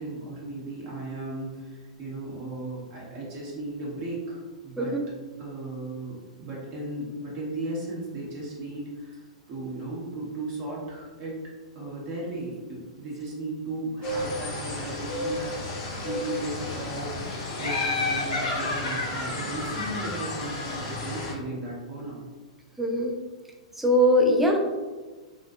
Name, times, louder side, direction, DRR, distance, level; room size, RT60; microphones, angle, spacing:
voice 1, 0.0-5.0 5.4-11.4 11.7-17.3 17.6-22.3, right 2 dB, 40° right, -5 dB, 0.9 m, -36 dB
sound 1, 14.0-21.3, left 2 dB, 40° left, 0.6 m, -34 dB
Laughter, 17.6-21.2, left 3 dB, 75° left, 0.9 m, -31 dB
voice 2, 22.8-23.1 23.8-24.6, equal, 5° right, 1 dB, 0.4 m, -21 dB
2.6 x 2.3 x 2.3 m, 1.3 s
hypercardioid pair, 110°, 4 cm